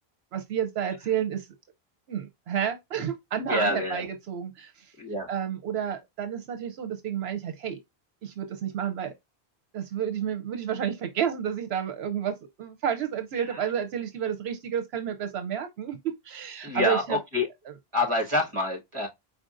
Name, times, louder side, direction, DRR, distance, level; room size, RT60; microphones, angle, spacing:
voice 1, 0.3-1.5 2.1-4.9 5.3-7.8 8.2-9.1 9.7-17.2 17.7-17.8, right 8 dB, 80° right, 0.9 m, -30 dB
voice 2, 3.5-4.0 5.0-5.3 16.6-17.5 17.9-19.1, left 2 dB, 30° right, 1.6 m, -27 dB
5.0 x 4.0 x 2.5 m
omnidirectional pair, 1.1 m